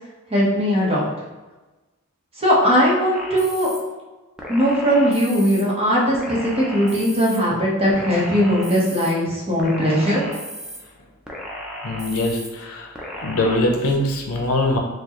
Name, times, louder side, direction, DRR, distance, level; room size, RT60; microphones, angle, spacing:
voice 1, 0.3-1.1 2.4-3.7 4.5-10.2, equal, 30° right, -5 dB, 1.0 m, -19 dB
sound 1, 3.1-3.8 4.4-5.6 6.1-7.4 7.9-9.1 9.6-10.8 11.3-12.5 12.9-13.6, equal, 5° right, 0.5 m, -34 dB
voice 2, 11.8-14.8, left 1 dB, 75° left, 1 dB, 0.6 m, -22 dB
4.6 x 2.3 x 3.0 m, 1.2 s
head